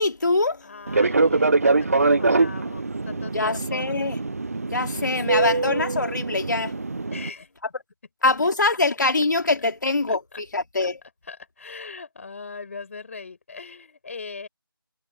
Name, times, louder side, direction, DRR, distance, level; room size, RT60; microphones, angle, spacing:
voice 1, 0.0-0.7 3.3-4.2 4.7-6.8 8.2-11.0, left 3 dB, 55° left, 2.5 m, -23 dB
voice 2, 0.6-3.9 4.8-5.8 7.1-7.5 9.6-9.7 10.1-10.4 10.8-10.9 11.2-14.5, left 4 dB, 35° left, 4.6 m, -40 dB
Fixed-wing aircraft airplane, 0.9-7.3, right 3 dB, 40° right, 0.4 m, -23 dB
figure-of-eight pair, 165°, 12 cm